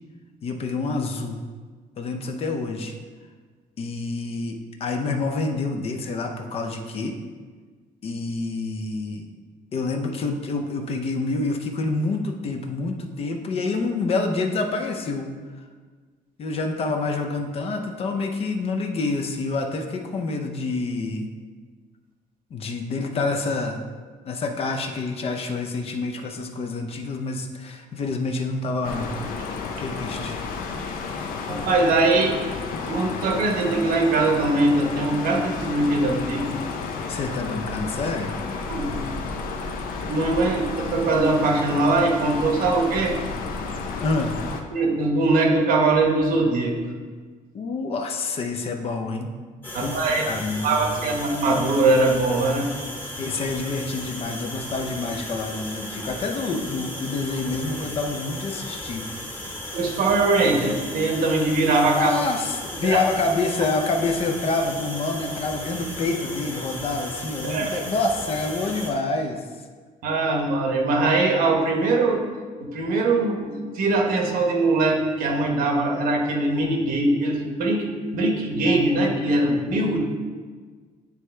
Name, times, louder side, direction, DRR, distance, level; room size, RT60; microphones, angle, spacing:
voice 1, 0.4-1.4 2.0-2.9 3.8-7.2 8.0-9.3 9.7-15.3 16.4-21.3 22.5-23.8 24.2-29.1 29.8-30.4 37.1-38.3 44.0-44.4 47.5-49.3 49.8-51.1 53.2-59.1 59.4-59.5 61.8-69.4, left 3 dB, 45° left, 5 dB, 0.6 m, -27 dB
sound 1, 28.8-44.6, left 4 dB, 85° left, 0.6 m, -32 dB
voice 2, 31.5-32.4 32.8-36.5 38.7-39.0 40.1-43.1 44.7-46.8 49.7-50.3 50.6-52.7 59.7-62.1 62.8-63.0 67.4-67.8 70.0-72.3 72.6-80.0, right 2 dB, 80° right, 2 dB, 1.0 m, -21 dB
sound 2, 49.6-68.9, left 1 dB, 15° left, 1.1 m, -35 dB
9.2 x 3.2 x 3.3 m, 1.5 s
cardioid pair, 150°, 15 cm